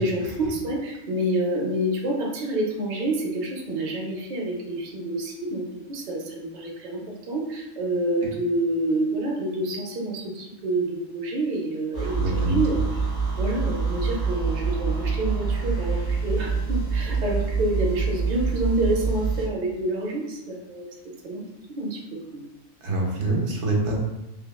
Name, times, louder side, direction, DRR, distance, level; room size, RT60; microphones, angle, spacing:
voice 1, 0.0-5.6 5.9-12.8 13.4-20.9 21.2-21.4 21.7-22.4, right 1 dB, 50° right, -1 dB, 0.6 m, -28 dB
sound 1, 11.9-19.5, right 5 dB, 85° left, 1.4 m, -26 dB
voice 2, 12.2-12.5 22.8-23.9, right 2 dB, 70° right, -1 dB, 1.0 m, -25 dB
3.5 x 2.2 x 2.2 m, 0.90 s
omnidirectional pair, 1.3 m